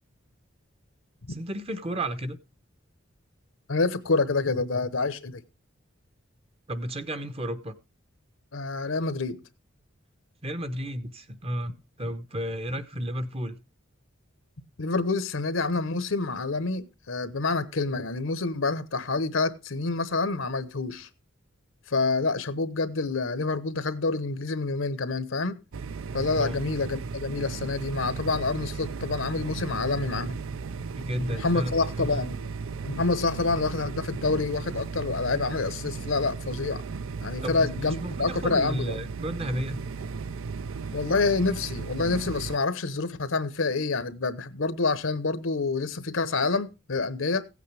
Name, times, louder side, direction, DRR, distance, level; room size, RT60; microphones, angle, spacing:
voice 1, 1.3-2.4 6.7-7.7 8.8-8.9 10.4-11.7 12.0-13.6 26.4-26.6 31.0-32.3 37.4-39.8, equal, 30° right, 0.8 m, -33 dB
voice 2, 3.7-5.4 8.5-9.4 14.8-21.1 21.9-25.6 26.1-30.4 31.3-32.4 32.8-36.8 37.2-39.0 40.9-47.5, left 3 dB, 70° left, 0.9 m, -27 dB
sound 1, 25.7-42.6, right 5 dB, 75° right, 0.5 m, -35 dB
16.0 x 8.4 x 3.3 m
head